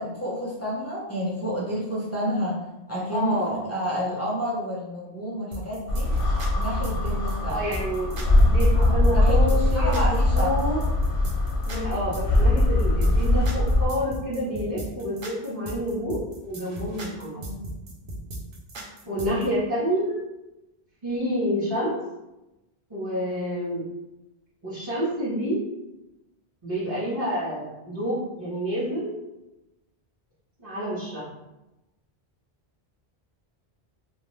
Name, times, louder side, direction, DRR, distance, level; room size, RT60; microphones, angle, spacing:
voice 1, 0.0-2.6 2.9-6.1 6.6-7.6 8.7-10.6 17.3-17.7 21.5-21.7 23.2-23.5, equal, 25° left, -7 dB, 0.4 m, -30 dB
voice 2, 3.1-3.5 7.4-8.1 8.4-10.8 11.6-17.4 19.1-20.2 21.0-22.0 22.9-23.8 24.6-25.6 26.6-29.1 30.6-31.2, equal, 25° right, -13 dB, 0.8 m, -28 dB
sound 1, 5.5-19.5, right 1 dB, 60° right, 0.7 m, -37 dB
sound 2, 5.9-13.9, left 1 dB, 65° left, 0.7 m, -21 dB
2.4 x 2.1 x 3.1 m, 0.96 s
omnidirectional pair, 1.1 m